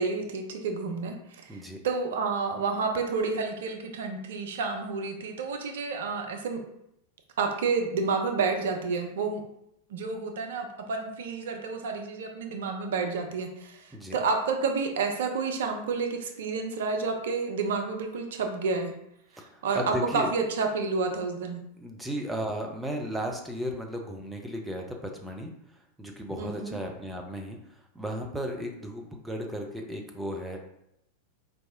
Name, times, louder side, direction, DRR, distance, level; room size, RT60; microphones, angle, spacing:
voice 1, 0.0-6.6 7.4-9.4 9.9-18.9 19.3-21.6 26.4-26.8, right 4 dB, 60° right, 4 dB, 0.5 m, -30 dB
voice 2, 19.4-20.3 21.8-30.6, equal, 5° right, 1 dB, 0.5 m, -35 dB
4.6 x 2.6 x 2.6 m, 0.79 s
figure-of-eight pair, 90°, 0 cm